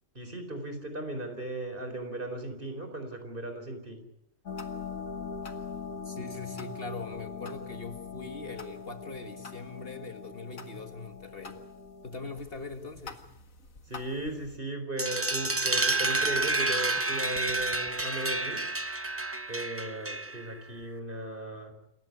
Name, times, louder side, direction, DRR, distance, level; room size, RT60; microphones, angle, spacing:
voice 1, 0.1-4.0 13.9-18.6 19.5-21.7, right 2 dB, 40° right, 6 dB, 4.6 m, -37 dB
sound 1, 4.5-14.6, left 5 dB, 85° left, 2.2 m, -42 dB
voice 2, 6.1-11.6 12.0-13.2, left 3 dB, 45° left, 7 dB, 2.0 m, -41 dB
sound 2, 15.0-20.5, right 2 dB, 15° right, 0.7 m, -29 dB
28.0 x 15.0 x 9.6 m, 0.78 s
omnidirectional pair, 1.4 m